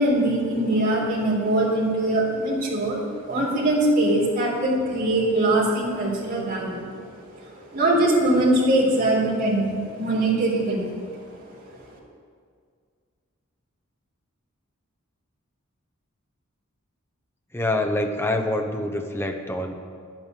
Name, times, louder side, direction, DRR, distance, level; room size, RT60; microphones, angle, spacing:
voice 1, 0.0-11.9, right 1 dB, 45° right, -4 dB, 3.9 m, -23 dB
voice 2, 17.5-19.7, left 1 dB, 10° left, 4 dB, 1.0 m, -26 dB
11.0 x 9.0 x 8.2 m, 2.1 s
head